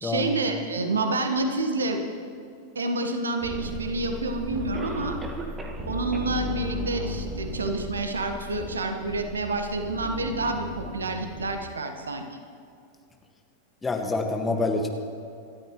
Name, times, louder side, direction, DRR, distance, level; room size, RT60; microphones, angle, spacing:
voice 1, 0.0-2.0 2.7-5.2 5.9-12.3, right 2 dB, 70° right, 6 dB, 1.4 m, -28 dB
sound 1, 3.4-11.6, left 1 dB, 40° right, 3.4 m, -36 dB
Cough, 3.6-3.7 4.7-5.9 6.1-6.2 6.8-6.9 7.4-7.5, right 3 dB, 20° right, 1.8 m, -37 dB
voice 2, 13.8-14.9, left 3 dB, 15° left, 2 dB, 1.8 m, -26 dB
27.0 x 13.0 x 3.2 m, 2.5 s
figure-of-eight pair, 90°, 0 cm